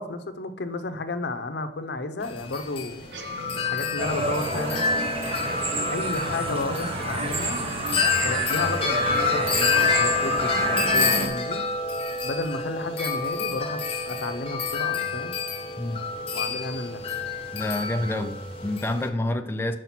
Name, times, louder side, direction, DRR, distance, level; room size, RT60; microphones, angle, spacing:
voice 1, 0.0-3.2 3.5-5.1 5.9-7.6 8.2-11.6 12.2-15.4 16.3-17.0, left 2 dB, 65° left, 0.6 m, -32 dB
Wind chime, 2.2-19.1, left 4 dB, 35° left, 0.8 m, -28 dB
sound 1, 3.0-9.7, right 1 dB, 70° right, 0.6 m, -42 dB
sound 2, 4.0-11.3, right 2 dB, 35° right, 0.8 m, -29 dB
voice 2, 15.8-16.1 17.5-19.8, left 1 dB, 15° left, 0.4 m, -28 dB
5.7 x 5.0 x 5.9 m
head